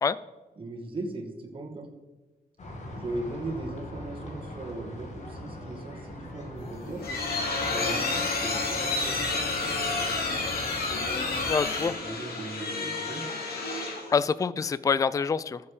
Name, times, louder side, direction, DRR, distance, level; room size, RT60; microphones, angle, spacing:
voice 1, 0.6-1.9 3.0-7.0 7.6-9.2 11.8-13.2, right 2 dB, 35° right, 1 dB, 2.2 m, -38 dB
sound 1, 2.6-11.5, left 1 dB, 50° left, 2.7 m, -41 dB
sound 2, 6.6-14.2, left 3 dB, 75° left, 2.8 m, -30 dB
voice 2, 11.5-12.0 14.1-15.6, left 5 dB, 20° left, 17 dB, 0.3 m, -26 dB
14.5 x 7.2 x 5.0 m, 1.1 s
wide cardioid pair, 130°, 16 cm